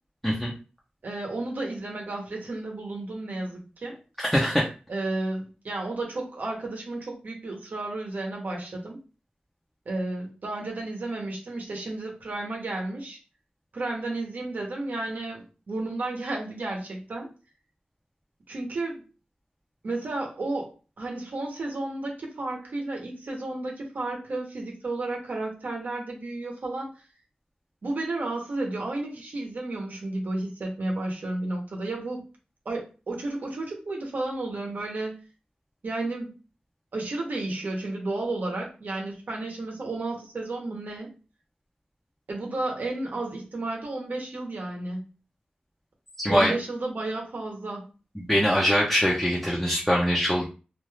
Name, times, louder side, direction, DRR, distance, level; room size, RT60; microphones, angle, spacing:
voice 1, 1.0-4.0 4.9-9.0 9.9-13.2 13.7-17.3 18.5-19.0 19.8-26.9 27.8-32.3 32.6-35.2 35.8-36.4 36.9-41.1 42.3-45.1 46.3-47.9, right 2 dB, 70° right, -1 dB, 0.9 m, -32 dB
voice 2, 4.3-4.7 46.2-46.5 48.3-50.5, equal, 5° left, -4 dB, 0.6 m, -22 dB
2.6 x 2.3 x 3.2 m, 0.34 s
wide cardioid pair, 100°, 3 cm